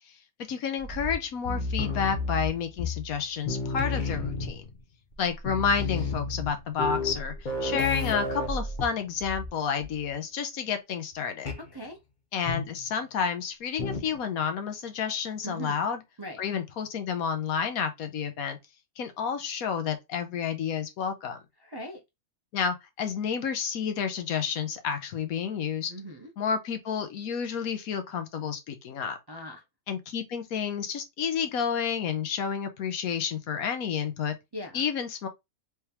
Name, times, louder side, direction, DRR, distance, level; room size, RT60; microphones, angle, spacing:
voice 1, 0.5-4.6 5.2-11.5 12.3-16.0 16.4-18.6 19.0-21.4 22.5-25.9 26.4-29.2 29.9-34.3 34.7-35.3, left 7 dB, 70° left, 1.1 m, -30 dB
sound 1, 0.8-3.2 3.5-4.8 5.1-5.2 5.4-9.5 9.8-10.1 11.5-11.7 12.5-12.9 13.8-14.2, left 3 dB, 40° left, 0.7 m, -32 dB
voice 2, 15.4-15.8 16.2-16.4 21.6-22.0 25.9-26.3 29.3-29.6 34.5-34.8, equal, 35° right, 0.4 m, -39 dB
3.5 x 3.3 x 2.8 m
omnidirectional pair, 1.6 m